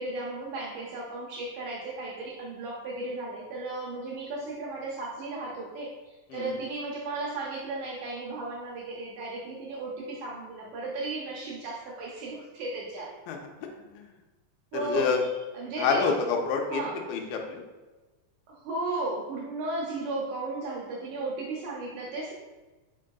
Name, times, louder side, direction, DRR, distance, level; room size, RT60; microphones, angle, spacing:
voice 1, 0.0-13.1 14.7-15.1 15.5-16.1 16.7-17.0 18.5-22.3, right 2 dB, 75° right, -3 dB, 1.9 m, -35 dB
voice 2, 14.7-15.2 15.8-17.6, left 5 dB, 85° left, 2 dB, 2.2 m, -28 dB
5.3 x 3.7 x 2.2 m, 1.2 s
omnidirectional pair, 4.0 m